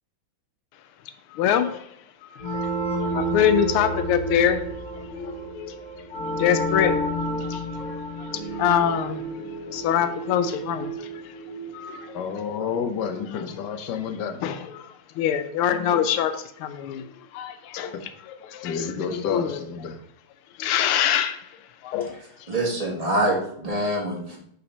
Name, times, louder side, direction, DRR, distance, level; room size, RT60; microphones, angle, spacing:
voice 1, 1.3-1.9 2.2-2.7 3.0-4.6 5.1-5.8 6.3-7.0 7.4-9.2 9.7-11.3 11.7-12.2 14.4-17.1 17.3-17.9 18.3-19.6 20.6-21.5 21.8-22.5, left 9 dB, 90° left, 9 dB, 1.5 m, -25 dB
sound 1, 2.4-12.8, right 1 dB, 40° left, 2.2 m, -30 dB
voice 2, 12.1-14.4 17.9-18.0 18.6-20.0, left 6 dB, 60° left, 6 dB, 1.3 m, -30 dB
voice 3, 22.5-24.4, right 1 dB, 20° right, -2 dB, 1.5 m, -25 dB
5.6 x 4.2 x 5.3 m, 0.68 s
omnidirectional pair, 2.3 m